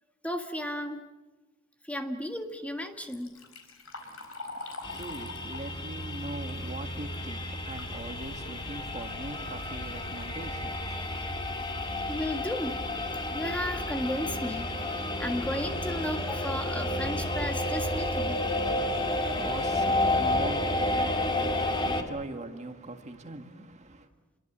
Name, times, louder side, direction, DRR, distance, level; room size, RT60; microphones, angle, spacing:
voice 1, 0.2-1.1 1.8-3.4 4.7-4.8 12.1-12.8 13.3-14.7 15.2-18.4, left 1 dB, 5° left, 1.8 m, -34 dB
Liquid, 2.9-8.0 8.4-8.5 9.4-9.5 9.9-10.2 10.8-10.9 11.4-11.5 11.9-12.2, left 2 dB, 80° left, 4.6 m, -45 dB
voice 2, 4.0-11.4 19.0-24.1, right 2 dB, 35° right, 1.8 m, -41 dB
sound 1, 4.8-22.0, left 1 dB, 25° left, 2.1 m, -31 dB
sound 2, 7.7-13.3, left 1 dB, 55° left, 1.8 m, -47 dB
28.0 x 22.5 x 7.4 m
head